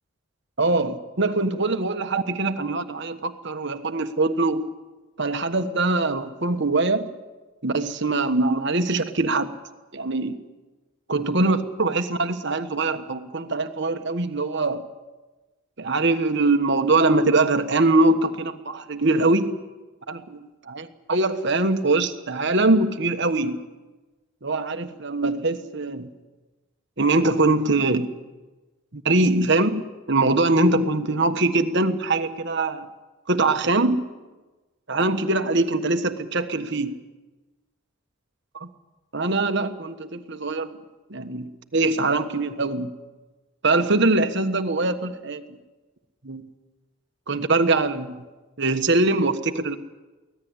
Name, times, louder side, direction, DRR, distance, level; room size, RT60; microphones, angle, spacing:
voice 1, 0.6-4.6 5.2-7.1 7.6-9.5 9.9-10.4 11.1-14.9 15.8-19.6 20.1-23.6 24.4-26.1 27.0-28.1 28.9-32.9 33.3-34.1 34.9-37.0 38.6-38.7 39.1-40.8 41.1-42.9 43.6-45.6 46.2-46.4 47.3-48.2 48.6-49.8, right 2 dB, 55° right, 7 dB, 1.4 m, -22 dB
24.5 x 17.0 x 8.2 m, 1.2 s
head